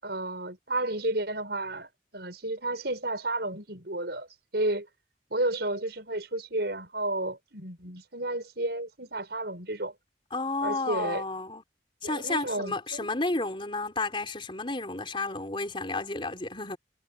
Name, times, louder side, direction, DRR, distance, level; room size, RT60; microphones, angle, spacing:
voice 1, 0.0-4.3 4.5-4.9 5.3-9.9 10.6-11.2 12.0-13.1, right 2 dB, 60° right, 6.9 m, -32 dB
voice 2, 10.3-11.6 12.0-16.8, left 3 dB, 30° left, 3.8 m, -31 dB
head